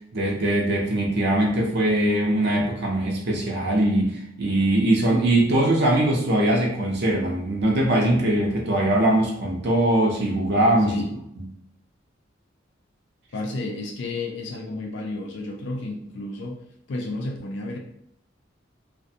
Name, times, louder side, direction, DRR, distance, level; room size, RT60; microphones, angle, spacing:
voice 1, 0.1-11.0 11.4-11.5, right 1 dB, 60° right, -2 dB, 0.5 m, -21 dB
voice 2, 10.9-11.2 13.3-16.6 16.9-17.8, left 2 dB, 70° left, 1 dB, 0.4 m, -32 dB
2.5 x 2.1 x 2.6 m, 0.73 s
head